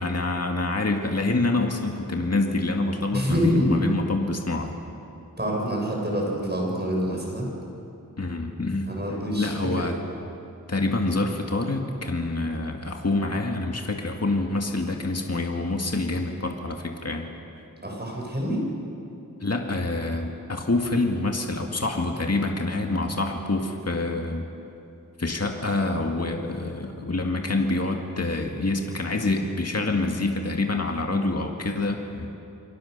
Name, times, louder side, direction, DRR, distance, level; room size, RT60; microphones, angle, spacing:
voice 1, 0.0-4.7 8.2-8.9 9.4-10.0 10.7-17.3 19.4-24.5 25.2-32.4, left 2 dB, 45° left, 2 dB, 2.1 m, -26 dB
voice 2, 3.1-3.8 5.4-7.5 8.9-9.9 17.8-18.7, equal, 30° right, -2 dB, 7.3 m, -26 dB
29.0 x 23.0 x 6.8 m, 2.7 s
wide cardioid pair, 60°, 34 cm